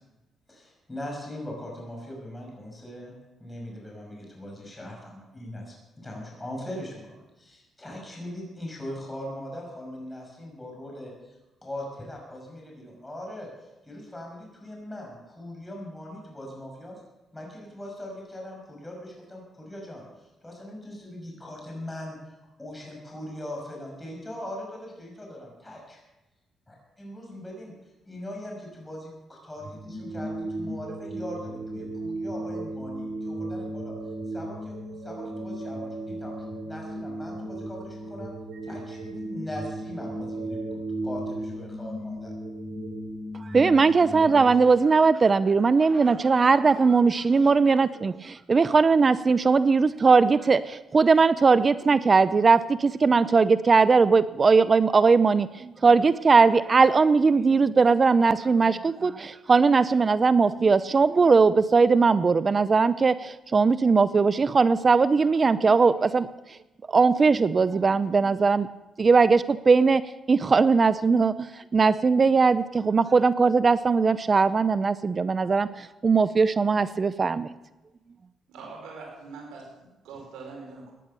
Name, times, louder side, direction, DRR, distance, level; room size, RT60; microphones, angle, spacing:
voice 1, 0.5-3.1 3.4-11.1 11.6-13.5 13.8-17.0 17.3-22.2 22.6-26.0 26.7-27.7 28.0-33.9 34.3-34.8 35.0-36.4 36.6-38.3 38.6-42.3, left 1 dB, 15° left, -1 dB, 6.1 m, -40 dB
sound 1, 29.6-44.4, right 1 dB, 70° right, 6.9 m, -35 dB
voice 2, 43.4-66.6 66.9-68.7 69.0-70.0 70.3-77.5, right 4 dB, 35° right, 15 dB, 0.6 m, -20 dB
voice 3, 78.5-80.9, right 4 dB, 85° right, -1 dB, 5.0 m, -43 dB
17.0 x 10.5 x 6.8 m, 1.0 s
cardioid pair, 90°, 0 cm